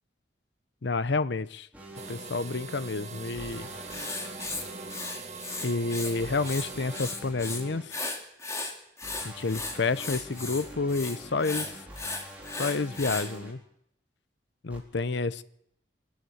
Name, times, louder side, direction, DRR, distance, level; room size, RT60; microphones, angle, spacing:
voice 1, 0.8-1.7 2.1-3.7 5.6-8.0 9.2-11.8 12.6-13.6 14.6-15.4, left 3 dB, 70° left, 0.7 m, -29 dB
sound 1, 1.7-2.1 3.3-5.0 6.2-7.8 9.0-13.5 14.7-14.8, equal, 10° right, 4.1 m, -45 dB
sound 2, 2.0-7.1, right 4 dB, 35° right, 1.8 m, -42 dB
Writing, 3.9-6.1 6.4-7.6 7.9-13.3, left 3 dB, 15° left, 2.4 m, -36 dB
22.5 x 13.0 x 9.4 m
head